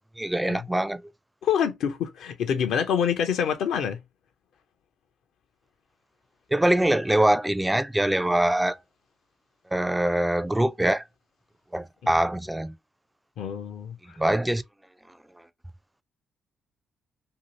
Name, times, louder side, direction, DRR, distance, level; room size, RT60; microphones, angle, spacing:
voice 1, 0.2-1.0 6.5-8.8 9.7-11.0 11.7-12.7 14.2-14.6, right 1 dB, 10° right, 0.3 m, -23 dB
voice 2, 1.4-4.0 13.4-14.2, left 8 dB, 60° left, 0.5 m, -26 dB
2.7 x 2.5 x 2.8 m
figure-of-eight pair, 45°, 0 cm